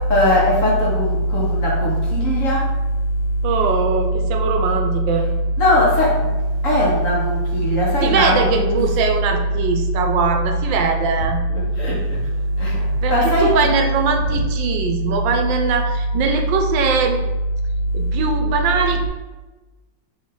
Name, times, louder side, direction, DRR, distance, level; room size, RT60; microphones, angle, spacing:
voice 1, 0.0-2.6 5.6-6.3 6.6-8.8 11.8-12.0 12.6-12.8 13.1-13.5 14.3-14.4, equal, 45° left, -4 dB, 1.8 m, -18 dB
voice 2, 3.4-5.3 8.0-11.4 13.0-17.2 17.9-19.1, right 5 dB, 80° right, 4 dB, 1.4 m, -21 dB
7.2 x 3.6 x 3.8 m, 1.2 s
omnidirectional pair, 2.1 m